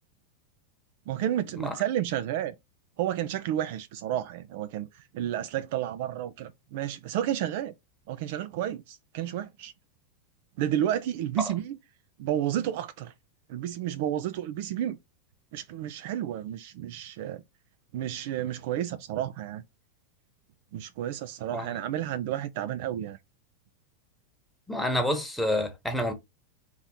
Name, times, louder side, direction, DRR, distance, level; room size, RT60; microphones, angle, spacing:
voice 1, 1.1-2.5 3.0-7.7 8.1-9.7 10.6-11.8 12.2-13.1 13.5-15.0 15.5-17.4 17.9-19.6 20.7-23.2, right 11 dB, 50° right, 0.4 m, -31 dB
voice 2, 24.7-26.1, left 1 dB, ahead, 1.1 m, -28 dB
4.0 x 3.0 x 3.7 m
figure-of-eight pair, 90°, 0 cm